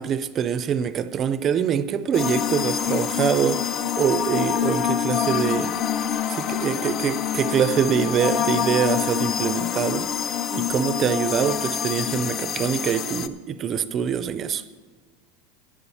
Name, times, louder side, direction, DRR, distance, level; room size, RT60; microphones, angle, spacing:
voice 1, 0.0-3.6 4.0-5.8 6.3-10.1 10.5-14.6, right 8 dB, 25° right, 0.5 m, -24 dB
sound 1, 2.1-13.3, left 9 dB, 30° left, 0.5 m, -26 dB
11.0 x 10.5 x 5.6 m
supercardioid pair, 165°, 0 cm